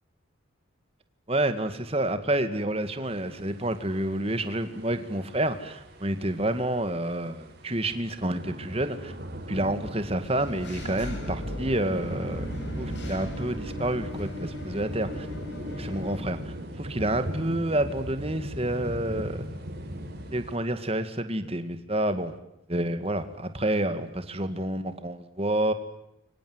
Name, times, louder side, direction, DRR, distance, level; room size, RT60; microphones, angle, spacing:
voice 1, 1.3-9.1 9.5-12.5 12.8-15.3 15.8-19.4 20.3-22.3 22.7-25.7, right 1 dB, 30° right, 10 dB, 2.1 m, -29 dB
sound 1, 3.1-20.6, equal, 50° right, 5.0 m, -39 dB
Engine / Mechanisms, 10.2-16.2, left 1 dB, 55° left, 6.1 m, -38 dB
30.0 x 24.5 x 8.1 m, 0.82 s
head